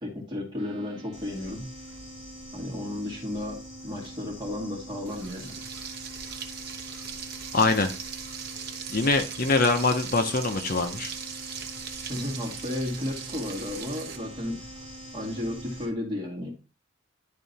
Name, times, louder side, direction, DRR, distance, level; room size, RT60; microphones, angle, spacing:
voice 1, 0.0-1.7 2.5-3.6 3.8-5.5 12.1-14.6 15.1-16.5, left 1 dB, 25° right, -2 dB, 2.3 m, -33 dB
sound 1, 0.6-15.9, right 1 dB, 75° right, 1.4 m, -46 dB
Bird / Insect, 1.1-15.9, left 1 dB, 15° left, 3.1 m, -47 dB
Frying (food), 5.1-14.2, right 7 dB, 50° right, 0.9 m, -39 dB
voice 2, 7.5-7.9 8.9-11.1, left 3 dB, 45° left, 7 dB, 0.7 m, -23 dB
10.5 x 3.7 x 4.1 m, 0.33 s
head